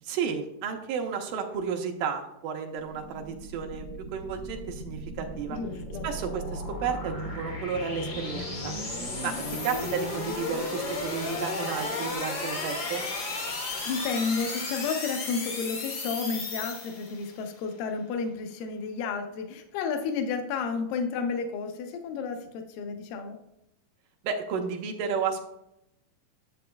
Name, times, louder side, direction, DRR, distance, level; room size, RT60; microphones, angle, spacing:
voice 1, 0.0-3.9 4.1-5.6 6.0-8.7 9.2-9.4 9.6-13.0 24.2-25.5, right 6 dB, 80° right, 3 dB, 2.3 m, -32 dB
sound 1, 2.8-17.4, left 2 dB, 60° left, 1.0 m, -35 dB
voice 2, 5.5-6.1 9.2-9.4 13.8-23.4, left 5 dB, 80° left, 5 dB, 2.4 m, -32 dB
10.5 x 7.6 x 2.3 m, 0.83 s
omnidirectional pair, 4.0 m